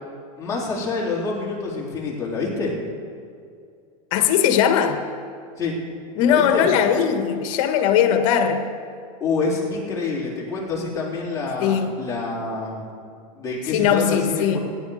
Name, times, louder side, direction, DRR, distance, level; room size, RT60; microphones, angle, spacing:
voice 1, 0.4-2.8 5.6-5.7 6.3-6.7 9.2-12.9 13.4-14.6, left 4 dB, 15° left, -6 dB, 3.6 m, -27 dB
voice 2, 4.1-5.0 6.2-8.7 11.6-12.0 13.7-14.6, left 8 dB, 60° left, 7 dB, 1.5 m, -19 dB
17.0 x 10.5 x 5.0 m, 2.3 s
supercardioid pair, 145°, 19 cm